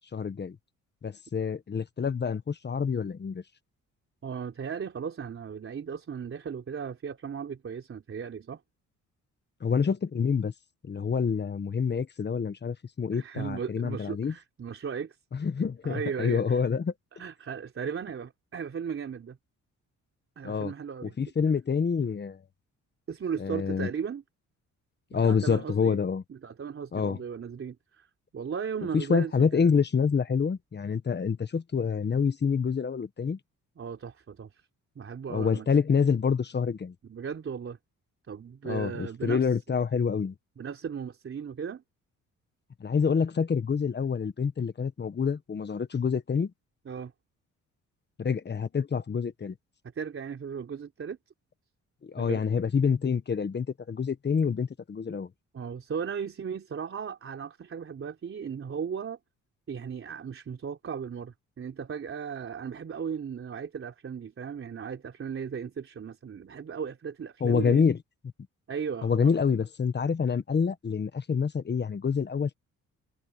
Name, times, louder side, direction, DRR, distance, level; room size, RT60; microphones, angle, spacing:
voice 1, 0.1-0.5 1.0-3.4 9.6-10.5 10.9-14.3 15.3-16.9 20.4-20.7 21.0-22.4 23.4-23.9 25.1-26.2 26.9-27.2 28.9-33.4 35.3-36.9 38.6-40.3 42.8-46.5 48.2-49.5 52.0-55.3 67.4-68.0 69.0-72.5, left 6 dB, 35° left, 1.4 m, -27 dB
voice 2, 4.2-8.6 13.1-15.2 15.8-16.6 17.1-19.4 20.4-21.1 23.1-24.2 25.1-26.0 26.3-29.7 33.8-34.6 35.0-35.7 37.0-37.8 38.3-39.5 40.6-41.8 46.9-47.1 49.9-51.2 52.2-52.4 55.5-59.2 59.7-67.8 68.7-69.3, right 6 dB, 45° right, 3.8 m, -36 dB
cardioid pair, 90°, 30 cm